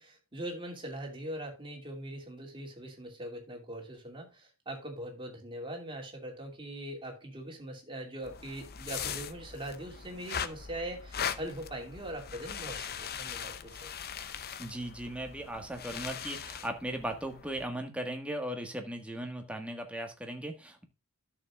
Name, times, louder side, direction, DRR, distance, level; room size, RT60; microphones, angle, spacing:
voice 1, 0.0-13.9, right 1 dB, 25° right, 0 dB, 2.7 m, -41 dB
Mittens against a brickwall, 8.2-17.6, left 7 dB, 45° left, 0.7 m, -40 dB
voice 2, 14.6-20.8, right 1 dB, 5° right, 4 dB, 1.6 m, -37 dB
12.5 x 6.9 x 2.4 m, 0.27 s
head